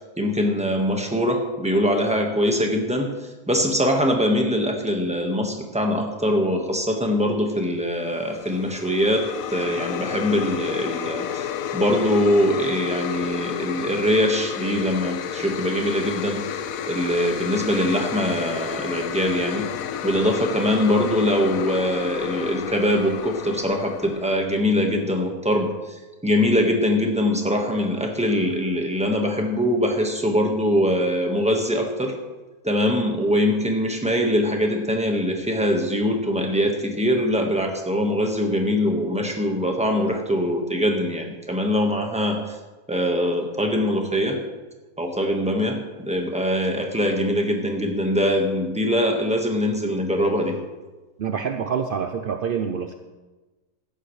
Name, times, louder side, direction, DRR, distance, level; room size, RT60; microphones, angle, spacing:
voice 1, 0.2-3.1 3.5-16.4 16.9-19.7 20.0-32.2 32.6-42.6 42.9-44.4 45.0-50.6, equal, 5° right, 2 dB, 1.3 m, -23 dB
sound 1, 8.1-24.5, left 9 dB, 70° left, 1.0 m, -31 dB
voice 2, 51.2-52.9, right 7 dB, 65° right, 6 dB, 0.5 m, -26 dB
16.0 x 12.0 x 3.2 m, 1.2 s
omnidirectional pair, 1.7 m